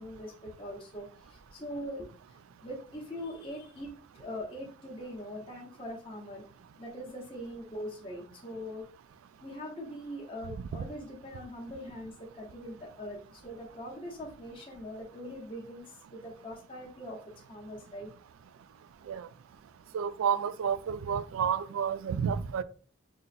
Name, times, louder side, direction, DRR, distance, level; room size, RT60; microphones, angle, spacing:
voice 1, 0.0-2.0 2.6-3.9 4.1-6.4 6.8-8.9 9.4-15.8 16.1-17.2 17.5-18.1, equal, 25° left, 0.8 m, -42 dB
voice 2, 19.9-22.6, right 7 dB, 90° right, 0.3 m, -30 dB
3.7 x 2.1 x 4.1 m
head